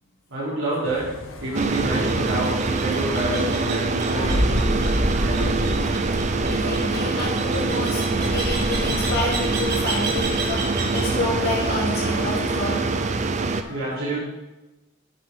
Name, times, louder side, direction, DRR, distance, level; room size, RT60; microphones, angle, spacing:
voice 1, 0.3-1.0 1.4-4.9 5.2-5.7 13.7-14.2, right 1 dB, 75° right, -9 dB, 3.5 m, -28 dB
sound 1, 0.8-12.9, left 2 dB, 75° left, 1.1 m, -37 dB
sound 2, 1.5-13.6, right 3 dB, 35° right, 0.5 m, -25 dB
sound 3, 1.6-11.1, right 1 dB, 50° right, 2.0 m, -29 dB
voice 2, 6.5-10.6 10.9-12.8 13.5-14.2, left 1 dB, 50° left, -3 dB, 2.8 m, -29 dB
10.5 x 7.7 x 3.8 m, 1.0 s
head